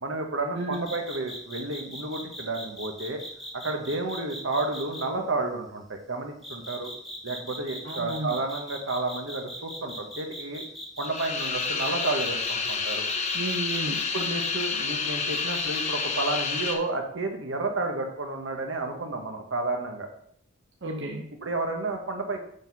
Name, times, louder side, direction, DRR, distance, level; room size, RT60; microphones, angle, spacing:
voice 1, 0.0-3.2 3.5-6.9 7.2-10.6 11.0-13.1 14.1-20.1 21.4-22.4, right 2 dB, 80° right, 4 dB, 1.2 m, -31 dB
voice 2, 0.5-0.9 7.8-8.3 13.3-14.0 20.8-21.3, right 1 dB, 65° right, -1 dB, 0.9 m, -33 dB
sound 1, 0.7-5.0 6.4-14.7 15.3-15.8, equal, ahead, 1.2 m, -39 dB
sound 2, 11.0-16.8, left 5 dB, 35° left, 0.8 m, -29 dB
7.0 x 4.2 x 5.4 m, 0.66 s
head